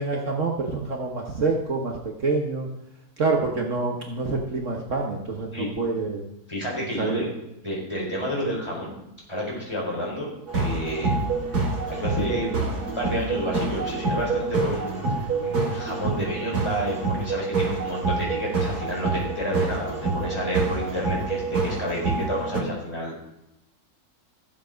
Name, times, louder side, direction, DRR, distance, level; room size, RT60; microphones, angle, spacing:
voice 1, 0.0-2.7 3.2-6.2 7.0-7.2, right 3 dB, 55° right, 1 dB, 1.5 m, -26 dB
voice 2, 6.5-7.3 7.6-9.0 9.3-11.2 11.4-11.6 11.9-23.2, equal, 15° left, -4 dB, 4.5 m, -30 dB
sound 1, 10.5-22.6, right 3 dB, 80° right, 3.3 m, -27 dB
14.5 x 7.6 x 5.1 m, 0.87 s
omnidirectional pair, 1.6 m